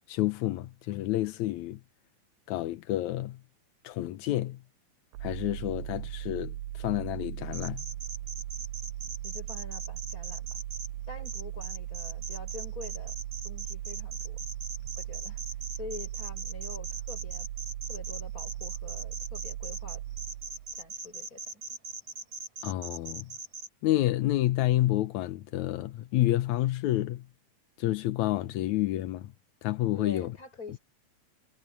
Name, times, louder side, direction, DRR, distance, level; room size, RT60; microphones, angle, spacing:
voice 1, 0.1-1.8 2.5-3.4 3.8-4.6 5.2-7.8 22.6-23.3 23.8-27.2 27.8-29.3 29.6-30.3, left 15 dB, 80° left, 1.7 m, -29 dB
sound 1, 5.1-20.9, right 13 dB, 80° right, 1.8 m, -38 dB
sound 2, 7.5-10.9 11.3-23.7, right 3 dB, 50° right, 5.5 m, -40 dB
voice 2, 9.2-10.6 11.1-13.2 13.4-14.4 15.0-15.4 15.8-17.5 17.9-20.0 20.7-21.8 30.0-30.8, left 3 dB, 20° left, 7.7 m, -46 dB
omnidirectional pair, 4.3 m